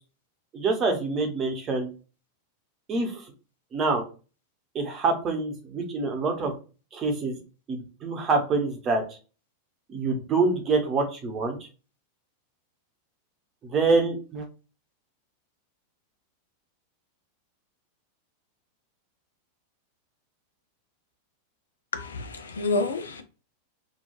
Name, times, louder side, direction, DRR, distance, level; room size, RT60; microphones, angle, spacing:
voice 1, 0.5-1.9 2.9-3.3 3.7-4.0 4.7-6.5 6.9-7.4 7.7-9.2 9.9-11.6 13.6-14.4, right 3 dB, 30° right, 0.8 m, -26 dB
voice 2, 21.9-23.2, left 3 dB, 70° left, 0.3 m, -28 dB
2.9 x 2.3 x 2.3 m
figure-of-eight pair, 90°, 0 cm